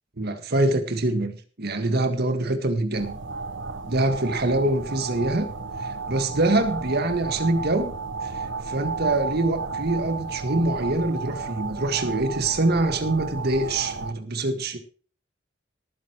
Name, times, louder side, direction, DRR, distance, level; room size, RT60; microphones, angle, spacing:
voice 1, 0.2-3.1 3.9-5.5 5.8-7.9 8.2-8.3 8.7-14.8, right 2 dB, 55° right, 7 dB, 1.8 m, -24 dB
sound 1, 2.9-14.1, right 4 dB, 75° right, 1.2 m, -33 dB
19.0 x 9.4 x 3.1 m, 0.41 s
head